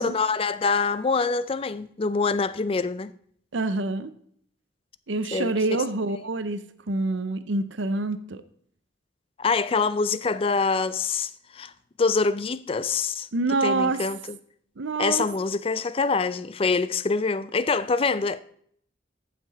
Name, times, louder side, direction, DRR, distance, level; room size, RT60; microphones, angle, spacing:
voice 1, 0.0-3.1 5.3-5.5 9.4-11.7 12.0-13.3 13.6-14.2 15.0-18.4, left 4 dB, 30° left, 0.4 m, -25 dB
voice 2, 3.5-4.1 5.1-8.4 13.3-14.0 14.8-15.3, right 3 dB, 80° right, 0.7 m, -26 dB
14.5 x 6.0 x 4.1 m
head